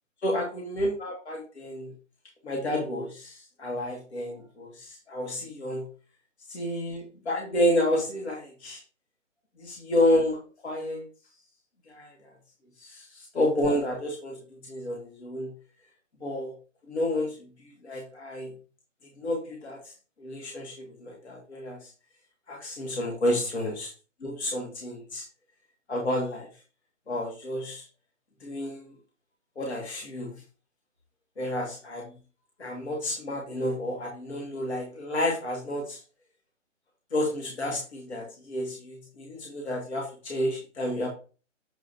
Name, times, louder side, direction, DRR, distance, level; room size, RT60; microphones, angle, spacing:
voice 1, 0.2-1.9 2.4-5.9 6.5-8.8 9.6-10.4 10.6-11.1 11.9-12.1 12.8-14.4 14.6-15.5 16.2-16.5 16.9-17.4 17.8-18.5 19.2-19.9 20.2-21.9 22.5-23.9 24.2-25.3 25.9-26.5 27.1-27.9 28.4-28.9 29.6-30.3 31.4-32.1 32.6-36.0 37.1-41.1, left 1 dB, 55° left, -1 dB, 2.0 m, -30 dB
7.3 x 5.0 x 2.7 m, 0.35 s
figure-of-eight pair, 150°, 39 cm